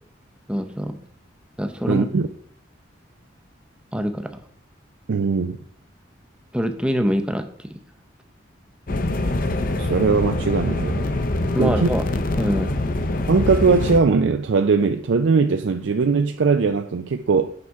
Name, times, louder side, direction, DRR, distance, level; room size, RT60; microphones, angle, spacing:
voice 1, 0.5-1.0 1.6-2.1 3.9-4.3 6.5-7.8 11.4-12.0 12.4-12.8, equal, 5° right, 0.6 m, -24 dB
voice 2, 1.9-2.3 5.1-5.6 9.8-11.1 11.6-11.9 13.3-17.5, right 4 dB, 75° right, 0.4 m, -20 dB
sound 1, 8.9-14.0, left 2 dB, 45° left, 0.7 m, -24 dB
8.7 x 5.7 x 4.6 m
head